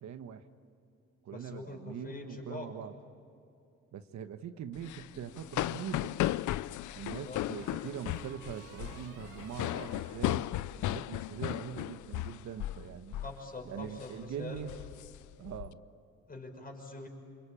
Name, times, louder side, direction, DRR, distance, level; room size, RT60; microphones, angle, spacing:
voice 1, 0.0-0.5 1.2-2.9 3.9-6.2 6.9-10.5 10.8-13.2 13.6-14.7 15.4-15.8, right 8 dB, 65° right, 9 dB, 1.3 m, -42 dB
voice 2, 1.3-2.7 7.0-7.4 13.2-14.7 16.3-17.1, left 2 dB, 30° left, 2 dB, 6.0 m, -44 dB
sound 1, 4.8-12.9 13.1-13.4 13.8-14.1 14.5-15.7, left 15 dB, 75° left, 0.6 m, -36 dB
sound 2, 4.8-5.7 7.5-11.2, right 5 dB, 85° right, 4.1 m, -54 dB
28.0 x 24.0 x 8.9 m, 2.6 s
cardioid pair, 90°, 30 cm